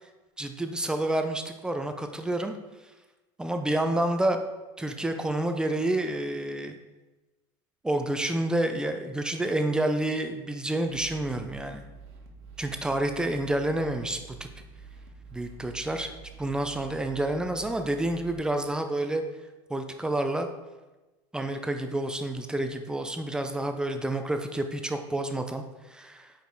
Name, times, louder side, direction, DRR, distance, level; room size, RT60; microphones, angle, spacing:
voice 1, 0.4-2.5 3.4-4.4 4.8-6.8 7.8-11.8 12.6-14.5 15.3-16.1 16.4-19.2 19.7-20.5 21.3-25.6 25.9-26.3, right 1 dB, 5° right, 6 dB, 0.4 m, -29 dB
sound 1, 10.9-18.4, right 4 dB, 65° right, 1.2 m, -48 dB
5.2 x 5.0 x 4.5 m, 1.1 s
supercardioid pair, 145°, 13 cm